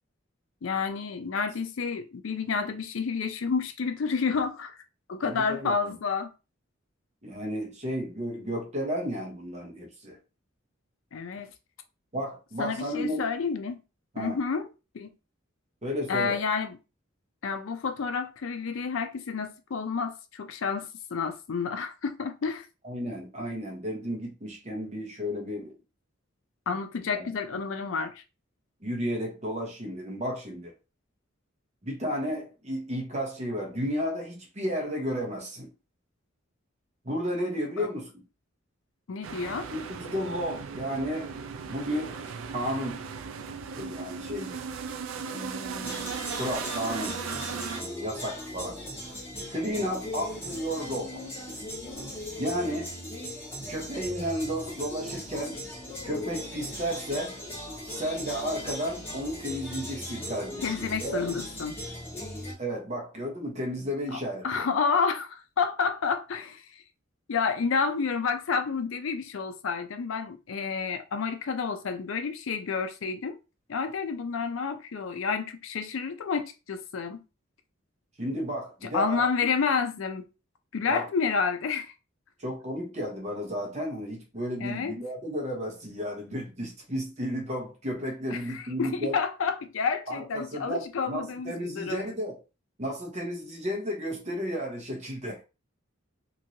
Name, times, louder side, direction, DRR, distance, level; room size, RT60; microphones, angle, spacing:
voice 1, 0.6-4.8 5.1-6.3 11.1-11.5 12.6-13.8 14.2-14.7 14.9-15.1 16.1-16.8 17.4-22.7 26.7-28.2 37.8-37.9 39.1-39.7 60.6-61.8 64.1-66.8 67.3-73.4 73.7-77.2 78.9-80.2 80.7-81.9 84.6-84.9 88.3-92.1, left 5 dB, 75° left, 0.5 m, -30 dB
voice 2, 5.2-5.7 7.2-10.2 12.1-13.3 14.1-14.4 15.8-16.4 22.8-25.7 27.1-27.3 28.8-30.7 31.8-35.7 37.0-38.1 39.7-41.3 41.7-43.0 43.7-44.6 45.2-46.1 46.4-48.8 49.5-51.2 52.4-52.9 53.7-55.6 56.0-57.4 57.9-61.3 62.6-64.6 78.2-79.3 80.9-81.1 82.4-89.2 90.1-92.4 92.8-95.4, equal, 35° right, 1.0 m, -33 dB
sound 1, 39.2-47.8, right 5 dB, 75° right, 0.4 m, -37 dB
sound 2, 45.8-62.5, left 1 dB, 10° left, 1.3 m, -38 dB
3.0 x 2.7 x 2.7 m
head